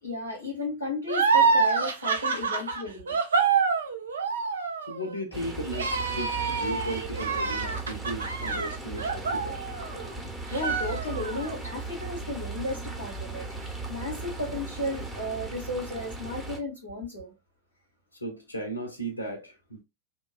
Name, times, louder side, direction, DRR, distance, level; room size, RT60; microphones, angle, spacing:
voice 1, 0.0-3.2 10.5-17.3, left 1 dB, 85° right, 1.5 m, -34 dB
sound 1, 1.1-10.1 10.5-11.5, right 5 dB, 70° right, 0.5 m, -27 dB
voice 2, 4.9-9.6 18.1-19.8, right 1 dB, 80° left, 0.6 m, -36 dB
sound 2, 5.3-16.6, right 3 dB, 5° right, 0.8 m, -37 dB
2.9 x 2.2 x 2.2 m
figure-of-eight pair, 90°, 0 cm